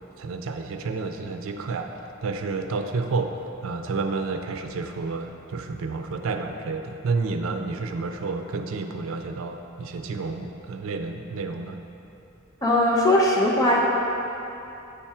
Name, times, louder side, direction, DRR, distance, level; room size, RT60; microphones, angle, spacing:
voice 1, 0.2-3.4 3.6-11.8, right 4 dB, 80° right, 6 dB, 0.4 m, -30 dB
voice 2, 12.6-13.8, left 1 dB, 15° left, -3 dB, 0.8 m, -19 dB
9.0 x 3.5 x 4.3 m, 2.9 s
head